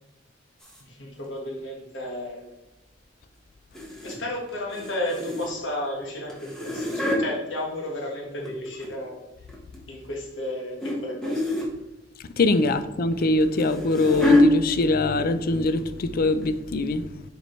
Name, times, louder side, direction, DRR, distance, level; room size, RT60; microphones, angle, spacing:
sound 1, 0.6-0.8 3.7-4.2 4.5-5.7 6.3-7.2 8.2-9.1 9.5-9.8 10.8-11.0 11.2-11.7 13.2-14.5 15.3-15.5 15.8-15.9 16.4-16.5, left 2 dB, 5° left, 1.2 m, -25 dB
voice 1, 0.8-2.5 4.0-9.2 9.9-11.5, left 1 dB, 75° left, 1.5 m, -33 dB
voice 2, 12.4-17.1, left 2 dB, 50° left, 0.4 m, -23 dB
6.6 x 4.7 x 3.1 m
head